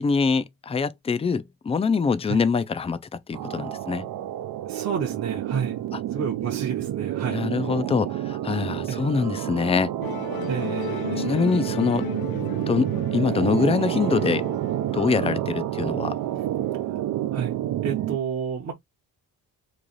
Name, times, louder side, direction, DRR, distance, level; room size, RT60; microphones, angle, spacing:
voice 1, 0.0-4.1 5.9-6.0 7.3-10.0 11.2-12.1 12.7-14.4 14.9-16.1, left 5 dB, 20° left, 0.3 m, -24 dB
sound 1, 3.3-18.2, right 12 dB, 70° right, 0.5 m, -29 dB
voice 2, 4.7-5.8 6.1-7.4 8.9-9.0 10.5-11.4 17.3-17.5 17.8-18.7, right 7 dB, 50° right, 0.8 m, -30 dB
Musical instrument, 10.0-16.6, left 14 dB, 90° left, 0.6 m, -37 dB
3.2 x 2.4 x 3.9 m
cardioid pair, 115°, 35 cm